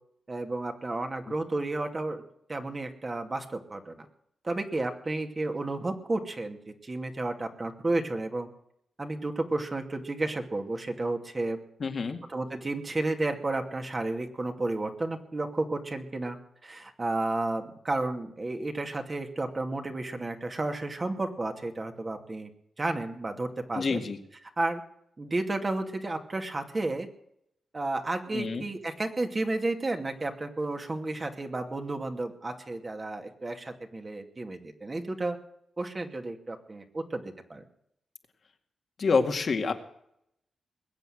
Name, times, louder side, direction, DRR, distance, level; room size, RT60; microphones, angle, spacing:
voice 1, 0.3-2.2 2.5-4.1 4.4-6.6 6.8-8.5 9.0-11.6 12.3-16.4 16.6-22.5 22.8-24.0 24.6-24.8 25.2-27.1 27.7-35.4 35.8-37.6, right 2 dB, 35° right, 5 dB, 2.4 m, -32 dB
voice 2, 11.8-12.2 23.7-24.2 28.3-28.6 39.0-39.7, left 4 dB, 60° left, 5 dB, 2.0 m, -27 dB
21.0 x 8.1 x 7.8 m, 0.73 s
cardioid pair, 65°, 0 cm